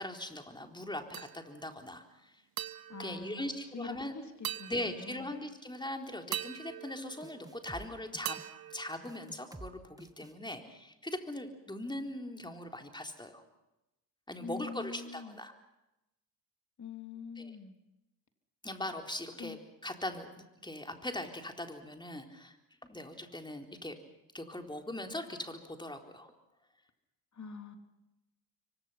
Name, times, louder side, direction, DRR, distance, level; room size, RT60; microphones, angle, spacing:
voice 1, 0.0-2.3 3.0-4.1 4.7-8.4 8.7-13.4 14.3-15.5 17.4-17.6 18.6-22.6 22.9-24.0 24.3-26.3, left 1 dB, 10° left, 4 dB, 4.0 m, -40 dB
sound 1, 1.1-1.7 2.6-4.0 4.4-5.5 6.3-7.8 8.3-9.7, right 12 dB, 50° right, 1.1 m, -43 dB
voice 2, 2.9-5.3 14.4-15.4 16.8-17.7 19.4-19.6 27.3-27.8, left 4 dB, 35° left, 6 dB, 3.4 m, -44 dB
sound 2, 7.2-7.9 8.1-8.5 9.0-9.7 10.0-10.3, right 2 dB, 10° right, 2.1 m, -49 dB
27.5 x 24.0 x 5.8 m, 0.93 s
hypercardioid pair, 60°, 47 cm